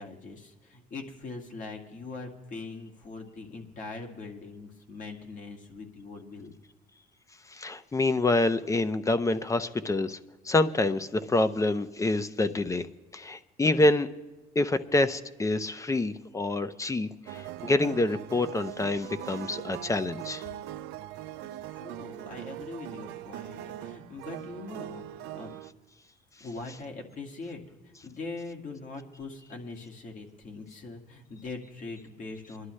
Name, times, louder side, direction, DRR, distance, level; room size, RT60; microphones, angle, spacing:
voice 1, 0.0-6.6 21.7-25.6 26.4-32.7, left 3 dB, 50° left, 2 dB, 2.1 m, -42 dB
voice 2, 7.5-10.2 10.5-12.9 13.1-14.1 14.6-20.4, left 2 dB, 20° left, 12 dB, 0.6 m, -27 dB
sound 1, 17.3-25.7, right 13 dB, 90° right, 0.5 m, -41 dB
22.5 x 11.5 x 3.2 m, 1.2 s
cardioid pair, 110°, 17 cm